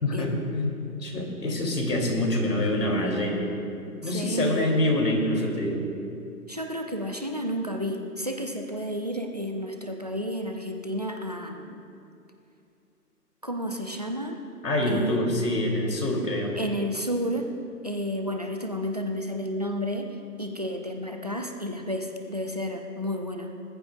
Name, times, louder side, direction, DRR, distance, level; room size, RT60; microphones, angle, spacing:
voice 1, 0.0-3.5 4.0-5.9 14.6-16.6, left 1 dB, 85° left, 0 dB, 3.5 m, -26 dB
voice 2, 4.0-4.7 6.5-11.8 13.4-14.4 14.9-15.5 16.6-17.5 17.8-23.5, equal, 25° right, 4 dB, 0.5 m, -31 dB
20.0 x 14.5 x 2.6 m, 2.6 s
hypercardioid pair, 170°, 48 cm